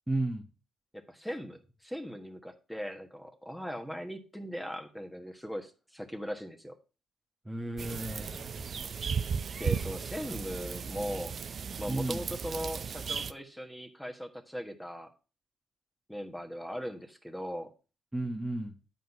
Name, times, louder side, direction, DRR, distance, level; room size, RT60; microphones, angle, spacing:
voice 1, 0.1-0.4 7.4-8.9 11.9-12.2 18.1-18.7, right 2 dB, 15° right, 2 dB, 1.2 m, -34 dB
voice 2, 0.9-6.7 9.6-11.3 11.8-15.1 16.1-17.7, equal, 5° left, 5 dB, 1.4 m, -39 dB
sound 1, 7.8-13.3, right 6 dB, 50° right, 0.4 m, -35 dB
9.2 x 4.0 x 5.8 m, 0.34 s
hypercardioid pair, 55°, 0 cm